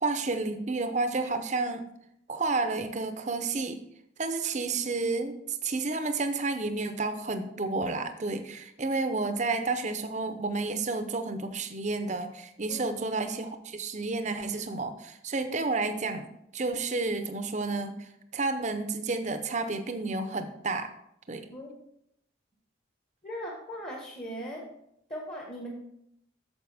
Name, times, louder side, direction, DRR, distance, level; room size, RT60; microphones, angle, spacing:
voice 1, 0.0-1.9 2.3-3.8 4.2-20.9 21.3-21.5, right 3 dB, 35° right, 8 dB, 0.7 m, -31 dB
voice 2, 12.7-13.0 21.5-21.7 23.2-24.6 25.1-25.7, equal, 30° left, -2 dB, 1.5 m, -39 dB
9.4 x 6.8 x 3.5 m, 0.76 s
head